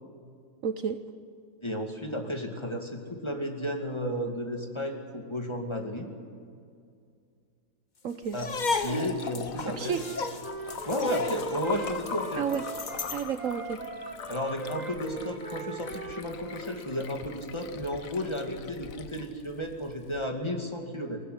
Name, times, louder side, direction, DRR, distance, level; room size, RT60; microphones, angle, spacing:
voice 1, 0.6-1.0 8.0-8.4 9.7-10.0 12.4-12.6 13.1-13.8, right 7 dB, 60° right, 9 dB, 1.2 m, -31 dB
voice 2, 1.6-6.1 8.3-8.5 8.8-10.0 10.9-12.5 14.3-21.2, equal, 20° left, 2 dB, 2.5 m, -33 dB
Liquid, 8.2-20.2, left 6 dB, 60° left, 1.4 m, -42 dB
sound 1, 8.3-13.3, left 4 dB, 35° left, 1.0 m, -34 dB
Wind instrument woodwind instrument, 9.9-16.8, right 3 dB, 25° right, 2.0 m, -41 dB
21.5 x 19.5 x 9.6 m, 2.3 s
omnidirectional pair, 1.6 m